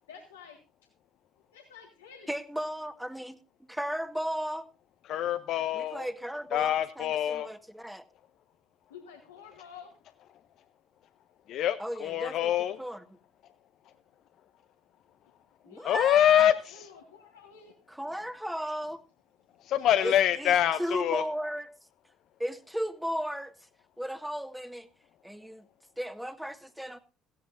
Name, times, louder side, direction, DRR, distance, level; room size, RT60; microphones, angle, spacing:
voice 1, 0.1-0.6 1.5-2.3 8.9-9.9 15.6-16.0 16.7-17.8, left 6 dB, 85° left, 1.8 m, -50 dB
voice 2, 2.3-3.4 3.7-4.7 5.7-8.0 11.8-12.5 12.8-13.0 15.7-16.5 17.9-19.0 20.0-21.7 22.4-23.5 24.0-24.9 25.2-25.7 26.0-27.0, equal, 5° right, 1.6 m, -35 dB
voice 3, 5.0-6.1 6.5-7.5 11.5-12.8 15.8-16.8 19.6-21.2, left 11 dB, 60° left, 0.7 m, -25 dB
17.0 x 15.5 x 2.6 m
hypercardioid pair, 55°, 0 cm